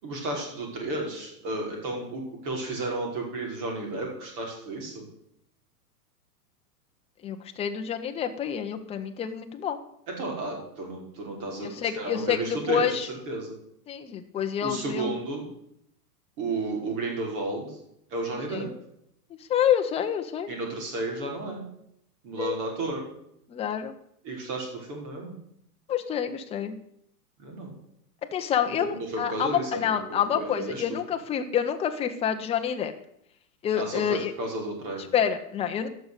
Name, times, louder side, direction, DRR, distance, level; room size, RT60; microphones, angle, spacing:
voice 1, 0.0-5.1 10.1-13.6 14.6-15.4 16.4-17.8 18.1-18.7 20.5-21.7 22.2-23.0 24.2-25.4 27.4-27.8 28.7-30.8 33.8-35.1, right 2 dB, 45° right, 0 dB, 5.3 m, -33 dB
voice 2, 7.2-9.8 11.6-13.1 13.9-15.2 18.5-18.7 19.5-20.5 22.4-22.6 23.5-24.0 25.9-26.8 28.3-32.9 33.6-34.3 35.1-35.9, left 9 dB, 15° left, 6 dB, 0.7 m, -28 dB
12.5 x 6.6 x 8.3 m, 0.74 s
hypercardioid pair, 145°, 47 cm